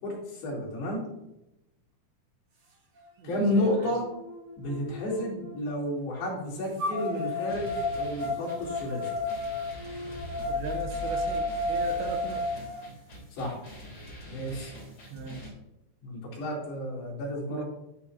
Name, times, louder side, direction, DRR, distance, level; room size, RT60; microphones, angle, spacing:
voice 1, 0.0-1.1 3.2-4.1 4.6-9.1 13.3-13.6 14.3-14.7 15.2-15.3 16.0-17.7, left 1 dB, 65° left, -5 dB, 5.4 m, -31 dB
sound 1, 3.0-3.1 3.6-5.5 6.8-12.8, left 2 dB, 45° right, 1.9 m, -33 dB
voice 2, 3.2-3.9 10.5-12.5 15.1-15.5 17.5-17.6, right 5 dB, 85° right, 5 dB, 3.1 m, -38 dB
sound 2, 7.5-15.5, right 1 dB, 25° left, 3.2 m, -45 dB
sound 3, 9.7-12.7 13.0-13.1, left 4 dB, 45° left, 1.6 m, -43 dB
10.5 x 10.5 x 2.9 m, 0.88 s
omnidirectional pair, 4.9 m